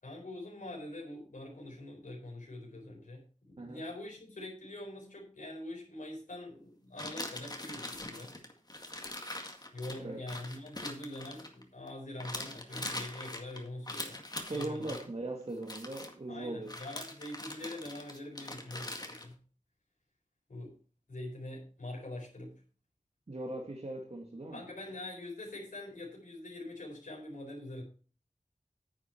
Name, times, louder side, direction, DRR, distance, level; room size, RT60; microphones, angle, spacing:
voice 1, 0.0-8.3 9.7-15.0 16.3-19.4 20.5-20.7 21.1-22.6 24.5-27.8, left 1 dB, 85° left, 4.3 m, -44 dB
sound 1, 7.0-11.9 12.2-15.0 15.6-16.1 16.7-19.3, left 1 dB, 30° left, 2.0 m, -42 dB
voice 2, 14.4-16.7 23.3-24.6, right 2 dB, 50° right, 1.9 m, -39 dB
9.9 x 8.6 x 4.5 m
wide cardioid pair, 65°, 13 cm